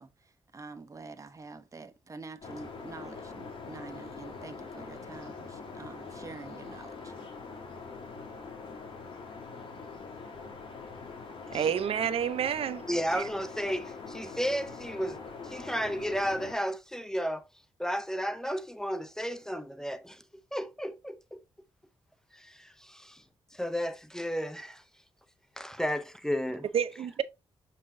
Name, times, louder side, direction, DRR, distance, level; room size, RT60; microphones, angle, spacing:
voice 1, 0.0-7.1, right 3 dB, 30° right, 1.0 m, -47 dB
sound 1, 2.4-16.5, left 4 dB, 55° left, 2.5 m, -43 dB
voice 2, 11.5-12.9 13.1-13.2 26.7-27.2, right 8 dB, 70° right, 0.7 m, -29 dB
voice 3, 12.9-15.2 15.4-17.4 17.8-20.2 20.5-21.4 22.3-23.2 23.5-24.8 25.6-26.7, equal, 5° left, 0.6 m, -33 dB
6.3 x 5.7 x 2.7 m
cardioid pair, 90°, 10 cm